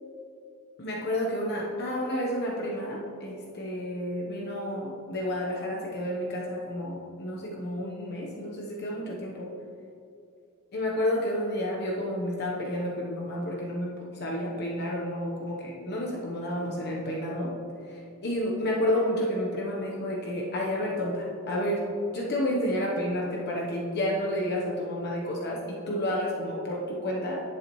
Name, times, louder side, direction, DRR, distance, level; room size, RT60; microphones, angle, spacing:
voice 1, 0.8-9.5 10.7-17.5 17.9-21.8 22.1-27.4, left 1 dB, 50° left, -2 dB, 1.1 m, -30 dB
10.0 x 8.4 x 3.1 m, 2.5 s
head